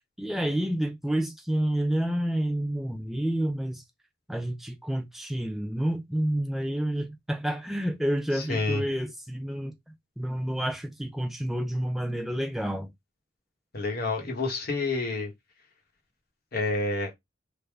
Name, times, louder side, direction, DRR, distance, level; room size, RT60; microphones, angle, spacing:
voice 1, 0.2-3.8 4.3-9.7 10.2-12.9, right 1 dB, ahead, 0.3 m, -29 dB
voice 2, 8.5-8.8 13.7-15.3 16.5-17.1, left 3 dB, 55° left, 1.0 m, -28 dB
3.3 x 2.1 x 3.4 m
head